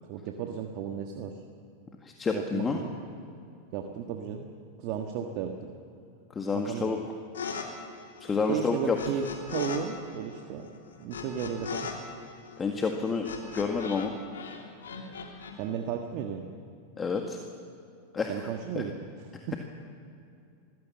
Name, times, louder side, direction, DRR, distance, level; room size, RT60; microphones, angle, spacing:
voice 1, 0.1-1.4 2.3-2.9 3.7-4.5 4.8-5.7 6.5-7.0 8.5-10.7 11.0-11.9 15.6-16.5 18.3-18.9 19.5-19.6, right 7 dB, 55° right, 3 dB, 1.5 m, -34 dB
voice 2, 2.0-2.8 6.3-7.0 8.2-9.0 12.6-13.3 13.5-14.2 17.0-17.4 18.1-18.5 18.8-18.9, left 4 dB, 20° left, 3 dB, 1.8 m, -29 dB
sound 1, 7.3-7.7 7.9-9.8 10.1-14.1 14.3-15.5, left 6 dB, 85° left, 3.1 m, -38 dB
23.5 x 16.0 x 7.4 m, 2.6 s
hypercardioid pair, 100°, 0 cm